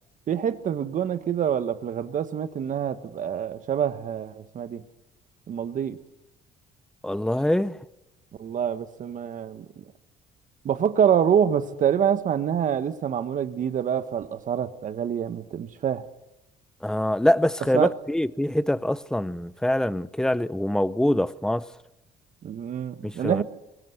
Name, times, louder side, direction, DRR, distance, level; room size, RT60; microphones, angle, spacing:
voice 1, 0.3-4.8 5.5-6.0 8.4-9.9 10.6-16.0 17.7-17.9 22.4-23.4, right 8 dB, 50° right, 1.5 m, -26 dB
voice 2, 7.0-7.8 16.8-21.7 23.0-23.4, left 1 dB, 5° left, 0.7 m, -24 dB
23.0 x 17.5 x 8.0 m
cardioid pair, 110°, 17 cm